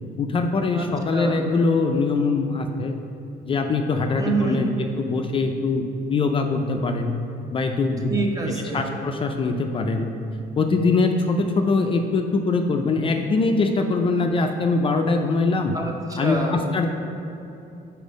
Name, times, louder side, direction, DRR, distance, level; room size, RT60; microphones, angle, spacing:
voice 1, 0.2-2.9 3.4-5.8 6.1-7.1 7.5-8.1 8.7-10.1 10.6-15.8 16.2-16.9, left 3 dB, 30° left, 4 dB, 0.4 m, -22 dB
voice 2, 0.7-1.4 4.2-4.6 8.1-8.9 15.7-16.6, right 3 dB, 20° right, 1 dB, 0.9 m, -27 dB
5.3 x 4.4 x 5.1 m, 2.8 s
cardioid pair, 110°, 17 cm